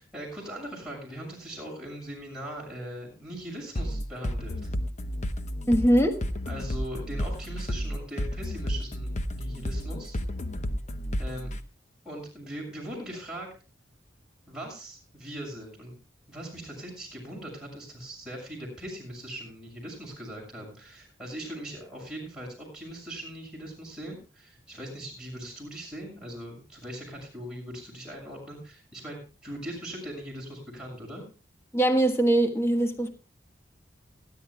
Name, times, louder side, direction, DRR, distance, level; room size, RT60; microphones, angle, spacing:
voice 1, 0.0-4.7 6.5-10.2 11.2-11.5 12.0-13.5 14.5-16.0 16.3-31.2, right 1 dB, 5° right, -3 dB, 6.8 m, -40 dB
sound 1, 3.8-11.6, equal, 35° left, 0.9 m, -32 dB
voice 2, 5.7-6.2 31.7-33.1, right 1 dB, 15° left, 5 dB, 1.4 m, -22 dB
29.5 x 11.0 x 2.3 m, 0.34 s
head